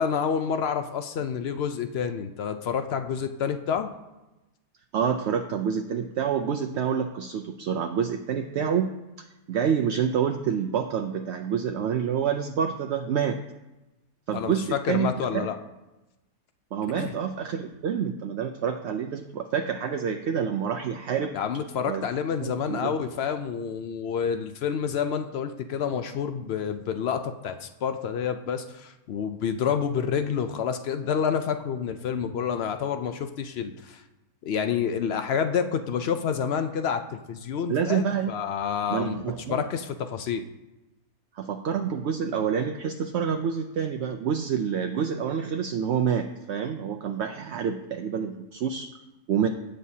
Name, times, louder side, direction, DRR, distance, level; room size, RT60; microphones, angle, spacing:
voice 1, 0.0-3.9 14.3-15.6 17.0-17.1 21.3-34.0 34.4-39.2 39.5-40.4, left 7 dB, 70° left, 9 dB, 0.6 m, -28 dB
voice 2, 4.9-8.9 9.5-13.4 14.3-15.5 16.7-21.4 21.9-22.1 22.4-22.9 37.7-38.3 38.9-39.7 41.3-48.9 49.3-49.5, right 7 dB, 65° right, 5 dB, 0.7 m, -27 dB
16.5 x 6.5 x 2.8 m, 1.0 s
omnidirectional pair, 1.5 m